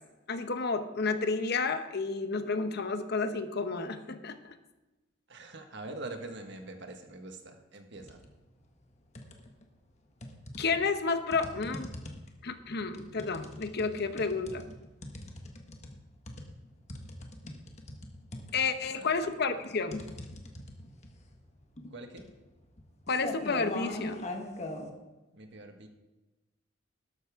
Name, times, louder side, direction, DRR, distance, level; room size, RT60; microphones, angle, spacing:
voice 1, 0.3-4.5 10.6-11.9 12.4-14.6 18.5-20.1 23.1-24.3, left 4 dB, 55° left, 9 dB, 0.9 m, -31 dB
voice 2, 5.3-8.2 18.8-19.1 21.9-22.3 25.3-25.9, right 2 dB, 65° right, 5 dB, 1.5 m, -44 dB
sound 1, 7.9-8.3 8.7-9.6 10.2-24.9, left 1 dB, 35° left, 1.4 m, -42 dB
13.0 x 12.0 x 3.6 m, 1.1 s
head